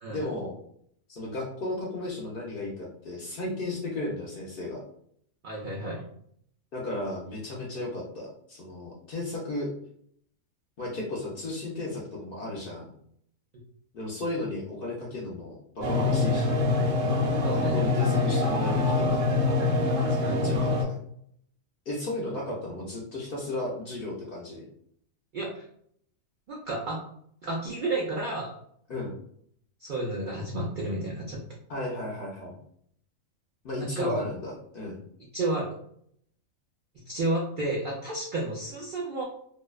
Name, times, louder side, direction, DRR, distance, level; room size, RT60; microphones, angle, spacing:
voice 1, 0.1-0.6 1.1-4.8 6.7-9.7 10.8-12.9 13.9-16.7 17.5-19.7 20.1-21.0 21.9-24.6 28.9-29.1 31.7-32.6 33.6-35.0, left 2 dB, 60° left, -3 dB, 0.6 m, -34 dB
voice 2, 5.4-6.0 17.4-17.8 20.2-20.5 25.3-25.7 26.5-27.0 27.4-28.5 29.8-31.4 33.8-34.3 35.3-35.7 37.1-39.2, right 2 dB, 90° right, -3 dB, 0.4 m, -31 dB
sound 1, 15.8-20.8, left 3 dB, 70° right, 0.9 m, -24 dB
2.6 x 2.0 x 2.3 m, 0.67 s
omnidirectional pair, 1.4 m